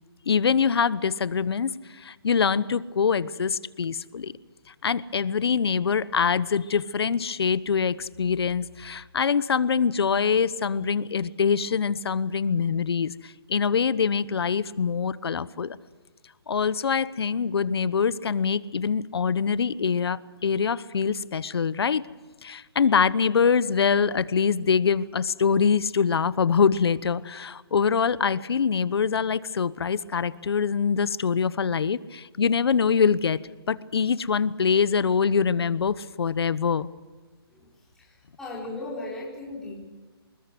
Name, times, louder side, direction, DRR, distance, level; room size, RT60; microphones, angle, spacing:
voice 1, 0.3-4.3 4.8-15.8 16.5-22.0 22.4-33.4 33.7-36.9, left 6 dB, 75° left, 17 dB, 1.1 m, -24 dB
voice 2, 37.9-39.9, left 2 dB, 5° left, -6 dB, 4.8 m, -37 dB
25.5 x 21.0 x 6.2 m, 1.4 s
hypercardioid pair, 160°, 13 cm